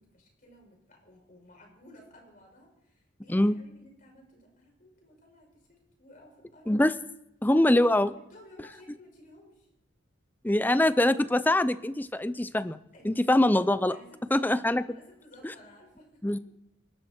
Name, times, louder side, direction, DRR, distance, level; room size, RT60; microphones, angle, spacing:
voice 1, 0.0-5.7 6.0-6.8 7.4-7.6 8.1-9.7 12.9-13.4 13.9-16.4, left 1 dB, 40° left, 0 dB, 5.7 m, -55 dB
voice 2, 7.4-8.1 10.4-12.8 13.0-13.9 14.3-14.8 16.2-16.4, left 1 dB, 10° left, 14 dB, 0.5 m, -23 dB
26.0 x 12.0 x 4.4 m, 0.84 s
head